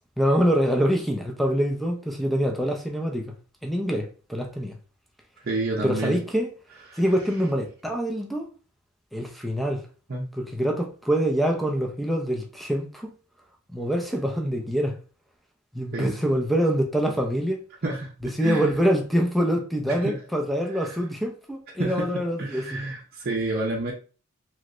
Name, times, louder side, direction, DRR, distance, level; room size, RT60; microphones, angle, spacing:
voice 1, 0.2-3.3 3.6-4.8 5.8-6.5 7.0-8.5 9.1-9.8 10.3-13.1 13.7-14.9 15.7-17.6 18.2-22.8, equal, ahead, 0.6 m, -25 dB
voice 2, 5.4-6.2 6.9-7.0 10.1-10.3 15.9-16.1 17.8-18.1 18.4-18.7 19.9-20.2 21.8-22.1 22.4-23.9, right 2 dB, 50° right, 0.7 m, -29 dB
3.1 x 3.0 x 2.5 m
head